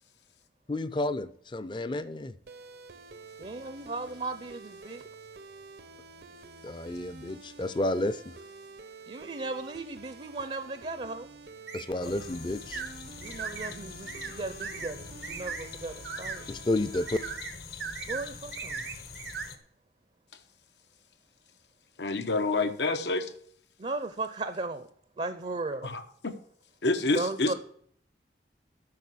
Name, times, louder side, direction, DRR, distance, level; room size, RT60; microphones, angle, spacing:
voice 1, 0.7-2.3 6.6-8.4 11.7-12.8 16.5-17.2, left 2 dB, 25° left, 0.5 m, -31 dB
sound 1, 2.5-17.4, right 3 dB, 70° right, 0.8 m, -49 dB
voice 2, 3.4-5.1 9.1-11.3 12.0-12.1 13.2-16.5 18.0-18.9 23.8-24.9 25.2-25.9 27.1-27.5, right 3 dB, 40° right, 0.5 m, -36 dB
sound 2, 11.7-11.9 12.7-12.9 13.2-13.7 14.1-14.3 14.6-14.9 15.2-15.6 16.0-16.4 16.9-17.5 17.8-18.2 18.5-19.5, right 5 dB, 90° right, 1.6 m, -38 dB
sound 3, 12.0-19.6, left 5 dB, 65° left, 1.0 m, -45 dB
voice 3, 22.0-23.3 25.8-26.4 26.8-27.5, left 3 dB, 85° left, 1.0 m, -28 dB
8.6 x 6.3 x 8.4 m
head